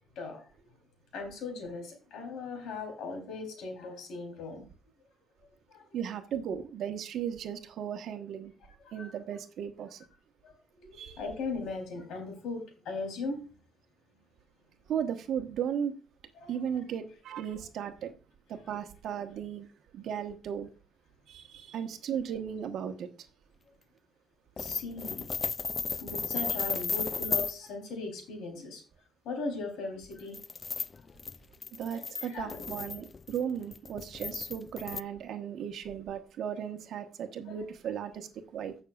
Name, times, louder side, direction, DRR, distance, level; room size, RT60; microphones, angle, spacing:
voice 1, 0.2-0.5 1.1-4.6 5.4-5.8 8.8-9.1 10.4-13.5 16.4-16.8 18.7-18.8 24.6-25.2 26.0-28.8 29.2-30.4 31.9-32.7 37.5-37.6, left 3 dB, 85° left, 3 dB, 3.4 m, -39 dB
voice 2, 5.9-8.5 8.9-10.0 10.9-11.2 14.9-16.0 16.5-18.1 18.5-19.7 19.9-20.7 21.3-23.1 31.8-38.7, right 8 dB, 75° right, 7 dB, 1.2 m, -36 dB
sound 1, 24.6-27.6 30.0-35.0, left 4 dB, 35° left, 0.3 m, -34 dB
16.5 x 6.4 x 2.4 m, 0.36 s
cardioid pair, 90°, 0 cm